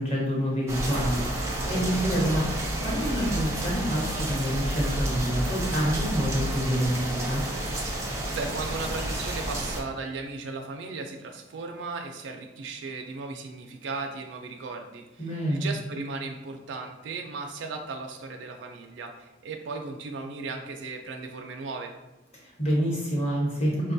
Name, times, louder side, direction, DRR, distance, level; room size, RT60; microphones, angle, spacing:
voice 1, 0.0-7.4 15.2-15.7 22.4-23.9, equal, 35° left, -4 dB, 1.0 m, -27 dB
sound 1, 0.7-9.8, right 1 dB, 15° right, 0.5 m, -30 dB
voice 2, 8.3-21.9, right 3 dB, 70° right, 3 dB, 0.4 m, -36 dB
4.6 x 2.2 x 2.6 m, 1.0 s
head